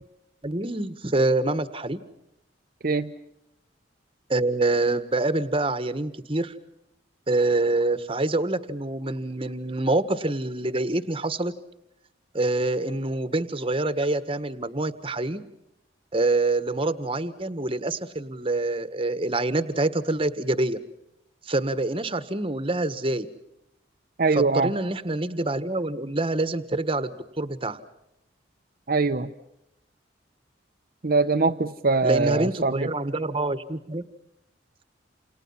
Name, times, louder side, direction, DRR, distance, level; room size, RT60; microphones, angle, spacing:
voice 1, 0.4-2.0 4.3-6.5 7.3-11.5 12.3-15.4 16.1-20.8 21.4-23.3 24.3-27.8 32.0-34.0, right 2 dB, 30° right, 12 dB, 1.5 m, -26 dB
voice 2, 24.2-24.7 28.9-29.3 31.0-32.9, right 3 dB, 50° right, 4 dB, 0.9 m, -22 dB
29.0 x 29.0 x 5.7 m, 0.85 s
head